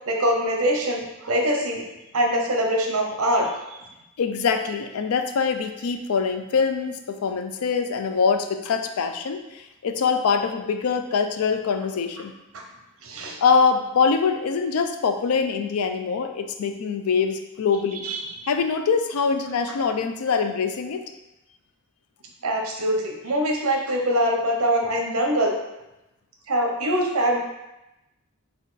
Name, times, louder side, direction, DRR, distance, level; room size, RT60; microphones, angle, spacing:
voice 1, 0.1-1.8 2.1-3.8 12.5-12.6 13.0-13.4 18.0-18.3 22.4-25.6 26.5-27.4, equal, 80° right, 1 dB, 0.7 m, -23 dB
voice 2, 4.2-12.3 13.4-18.1 18.5-21.0, left 5 dB, 85° left, 7 dB, 0.4 m, -24 dB
4.1 x 2.4 x 3.9 m, 0.95 s
head